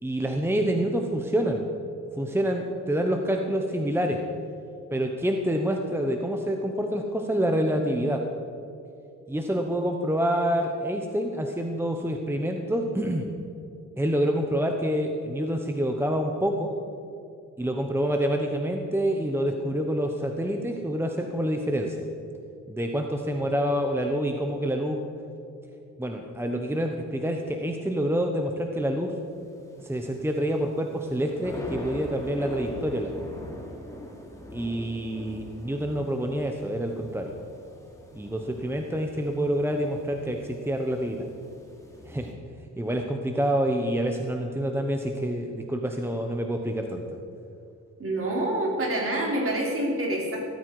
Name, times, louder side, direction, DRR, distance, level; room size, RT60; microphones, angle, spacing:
voice 1, 0.0-1.6 2.2-4.2 4.9-8.2 9.3-13.3 14.0-16.7 17.6-22.0 22.7-25.0 26.0-29.2 29.8-33.1 34.5-37.3 38.1-41.3 42.1-42.4 42.8-47.0, equal, 10° right, 3 dB, 1.1 m, -27 dB
sound 1, 29.2-42.3, left 1 dB, 10° left, 2.9 m, -43 dB
voice 2, 48.0-50.4, right 1 dB, 45° right, -2 dB, 4.5 m, -27 dB
17.0 x 14.0 x 4.9 m, 2.7 s
cardioid pair, 105°, 30 cm